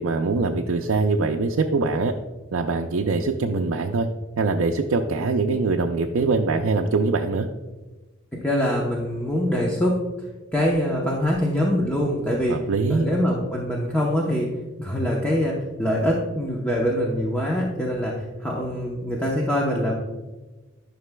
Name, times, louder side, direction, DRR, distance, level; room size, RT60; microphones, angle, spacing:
voice 1, 0.0-2.1 2.5-4.1 4.4-7.5 12.5-13.1, right 3 dB, 85° right, 2 dB, 0.5 m, -23 dB
voice 2, 8.4-9.9 10.5-12.6 12.9-14.5 14.8-19.9, equal, 5° left, -4 dB, 0.8 m, -24 dB
11.0 x 5.9 x 2.2 m, 1.2 s
head